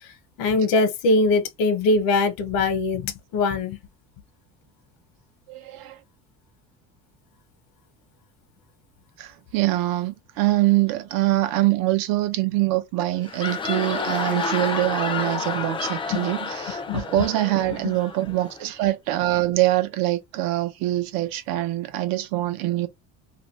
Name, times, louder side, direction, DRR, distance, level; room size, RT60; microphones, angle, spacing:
voice 1, 0.4-3.8 16.1-16.2 16.9-17.2, left 3 dB, 75° left, 0.9 m, -22 dB
voice 2, 5.5-6.0 9.2-22.9, right 16 dB, 75° right, 0.7 m, -24 dB
sound 1, 13.1-18.7, left 4 dB, 15° left, 0.4 m, -30 dB
2.6 x 2.5 x 3.1 m
cardioid pair, 140°, 35 cm